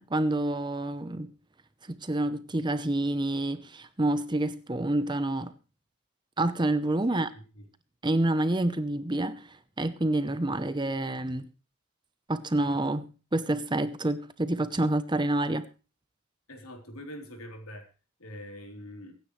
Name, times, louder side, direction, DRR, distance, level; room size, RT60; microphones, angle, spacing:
voice 1, 0.0-1.3 1.9-5.5 6.4-7.3 8.0-11.5 12.3-15.7, right 1 dB, 20° right, 13 dB, 0.8 m, -28 dB
voice 2, 16.5-17.9 18.2-19.1, equal, 80° left, 3 dB, 3.6 m, -43 dB
23.5 x 9.8 x 3.2 m, 0.33 s
head